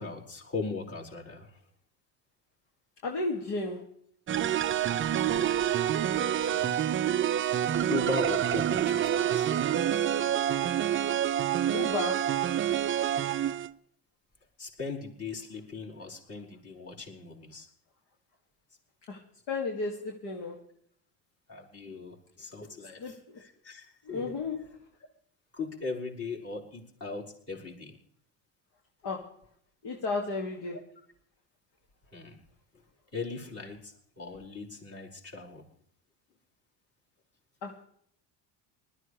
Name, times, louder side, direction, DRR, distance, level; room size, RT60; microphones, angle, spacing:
voice 1, 0.0-1.6 4.9-5.5 6.2-6.7 7.4-7.6 7.9-9.5 13.2-13.6 14.6-17.7 21.5-24.4 25.5-28.0 32.1-32.4 33.1-35.6, left 4 dB, 30° left, 5.1 m, -39 dB
voice 2, 3.0-3.8 11.7-12.3 19.1-19.2 19.5-20.6 23.0-23.2 24.1-24.7 29.0-29.3 29.8-30.8 37.6-37.7, left 3 dB, 60° left, 2.3 m, -33 dB
sound 1, 4.3-13.7, right 10 dB, 30° right, 0.5 m, -27 dB
20.0 x 13.5 x 3.3 m
supercardioid pair, 100°, 47 cm